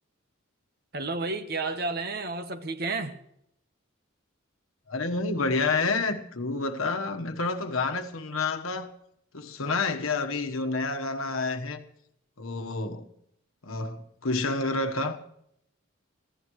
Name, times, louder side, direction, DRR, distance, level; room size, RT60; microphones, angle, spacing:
voice 1, 0.9-3.2, right 3 dB, 50° right, 1.1 m, -31 dB
voice 2, 4.9-8.9 9.3-11.8 12.4-13.1 13.6-15.2, left 3 dB, 90° left, 1.3 m, -29 dB
26.5 x 15.5 x 3.2 m
head